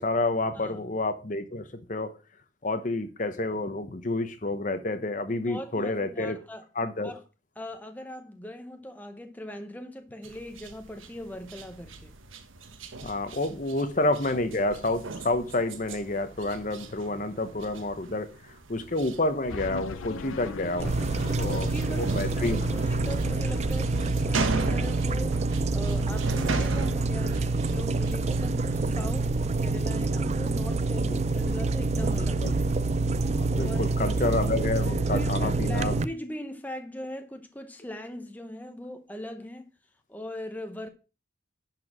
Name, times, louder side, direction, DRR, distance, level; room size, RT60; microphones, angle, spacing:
voice 1, 0.0-2.1 2.6-6.4 6.8-7.1 13.0-18.3 18.7-20.9 21.3-21.7 22.0-22.6 31.1-31.2 32.2-32.5 33.4-35.9, left 2 dB, 40° left, 0.9 m, -29 dB
voice 2, 5.3-6.7 7.0-7.2 7.6-12.1 21.4-32.4 33.5-34.0 35.1-39.7 40.1-40.9, left 1 dB, 10° left, 0.9 m, -40 dB
sound 1, 10.2-29.1, right 3 dB, 85° right, 1.3 m, -39 dB
sound 2, 19.5-25.0, left 4 dB, 85° left, 0.6 m, -40 dB
sound 3, 20.8-36.0, right 3 dB, 35° right, 0.4 m, -27 dB
11.0 x 4.7 x 6.0 m
head